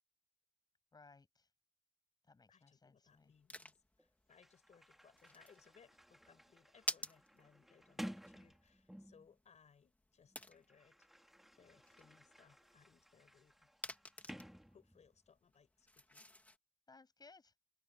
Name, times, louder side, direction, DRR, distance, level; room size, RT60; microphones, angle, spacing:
voice 1, 0.9-1.5 2.3-3.3 16.9-17.5, left 4 dB, 35° left, 6.9 m, -62 dB
voice 2, 2.5-11.3 11.6-13.7 14.2-16.3, left 6 dB, 85° left, 5.8 m, -68 dB
sound 1, 3.1-16.6, left 1 dB, 15° left, 2.0 m, -52 dB
Sliding door, 4.0-4.1 4.3-9.4 10.3-15.3, equal, ahead, 2.0 m, -55 dB
wide cardioid pair, 175°, 11 cm